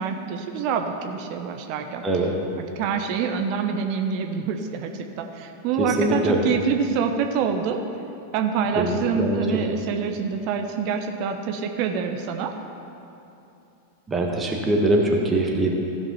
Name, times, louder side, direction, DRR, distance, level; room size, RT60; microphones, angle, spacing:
voice 1, 0.0-2.0 2.6-7.8 8.3-12.5, right 6 dB, 45° right, 5 dB, 0.8 m, -26 dB
voice 2, 2.0-2.3 5.8-6.4 8.7-9.4 14.1-15.7, right 1 dB, 15° right, 0 dB, 1.5 m, -22 dB
15.5 x 5.5 x 5.6 m, 2.8 s
figure-of-eight pair, 90°, 0 cm